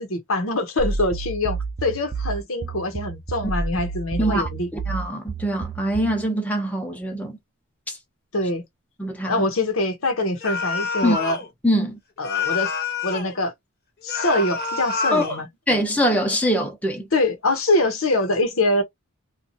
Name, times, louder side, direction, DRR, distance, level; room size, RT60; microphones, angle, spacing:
voice 1, 0.0-4.7 8.3-8.6 9.2-11.4 12.2-12.7 13.0-13.5 14.0-15.5 17.1-18.8, left 2 dB, 80° left, 0.9 m, -24 dB
sound 1, 0.8-6.3, right 4 dB, 35° right, 0.4 m, -30 dB
voice 2, 4.2-4.5 4.9-7.4 7.9-8.0 9.0-9.4 11.0-11.2 11.6-12.0 15.1-15.2 15.7-17.1, equal, 5° left, 0.7 m, -23 dB
sound 2, 10.4-11.5 12.2-13.4 14.1-15.4, left 5 dB, 45° left, 0.9 m, -27 dB
2.6 x 2.4 x 2.7 m
head